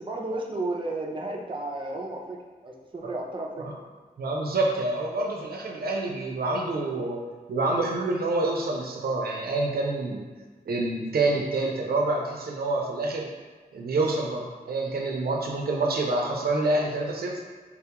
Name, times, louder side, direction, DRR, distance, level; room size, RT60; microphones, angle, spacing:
voice 1, 0.0-2.4 2.6-3.7, right 2 dB, 35° right, -1 dB, 0.4 m, -33 dB
voice 2, 4.2-7.2 7.5-10.3 10.7-13.3 13.7-17.4, right 2 dB, 85° right, 0 dB, 0.5 m, -27 dB
3.9 x 2.3 x 2.8 m, 1.4 s
wide cardioid pair, 105°, 15 cm